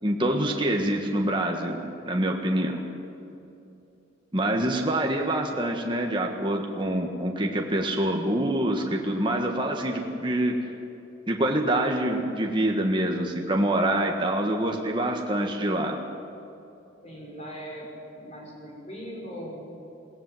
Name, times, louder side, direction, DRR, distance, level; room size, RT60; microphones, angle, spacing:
voice 1, 0.0-2.8 4.3-10.6 11.3-16.0, right 1 dB, 25° right, 1 dB, 1.6 m, -26 dB
voice 2, 17.0-17.9 18.1-19.8, equal, 35° left, -2 dB, 5.5 m, -39 dB
20.5 x 18.0 x 7.9 m, 2.8 s
head